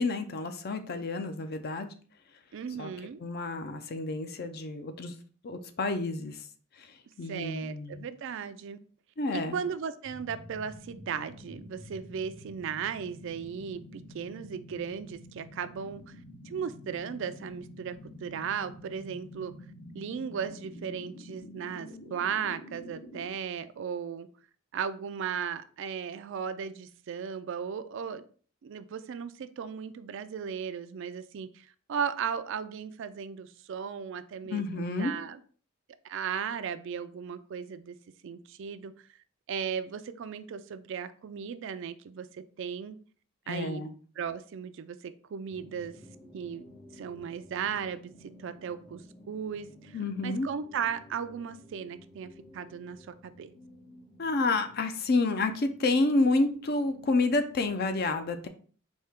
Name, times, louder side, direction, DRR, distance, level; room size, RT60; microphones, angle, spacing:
voice 1, 0.0-1.9 2.8-2.9 3.2-5.1 5.4-6.5 6.8-8.1 9.2-9.6 34.4-35.1 43.5-43.9 49.9-50.5 54.2-58.5, left 3 dB, 50° left, 8 dB, 0.5 m, -29 dB
voice 2, 2.5-3.2 7.3-8.8 9.3-16.2 16.4-19.5 19.9-24.3 24.7-28.2 28.6-35.4 36.0-38.0 38.2-38.9 39.5-43.0 43.5-43.8 44.2-45.9 46.3-46.6 46.9-48.1 48.4-49.0 49.3-53.5, right 7 dB, 60° right, 12 dB, 0.3 m, -36 dB
sound 1, 10.0-23.3, left 1 dB, 80° left, 1.6 m, -48 dB
sound 2, 45.5-57.7, left 1 dB, 25° left, 0.9 m, -54 dB
4.4 x 2.8 x 3.5 m, 0.43 s
head